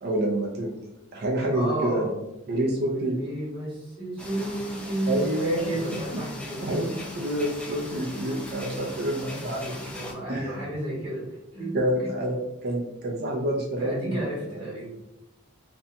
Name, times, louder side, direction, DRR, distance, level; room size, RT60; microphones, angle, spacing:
voice 1, 0.0-0.7 1.1-2.1 2.5-3.2 5.1-5.8 6.6-9.8 10.3-10.6 11.7-12.4 12.6-14.4, right 1 dB, 55° right, -1 dB, 0.5 m, -27 dB
voice 2, 1.5-2.1 2.7-6.7 9.8-12.1 13.8-15.0, right 1 dB, 25° right, -7 dB, 1.2 m, -32 dB
sound 1, 4.2-10.1, left 1 dB, 5° left, 0.3 m, -39 dB
2.6 x 2.2 x 2.6 m, 0.91 s
head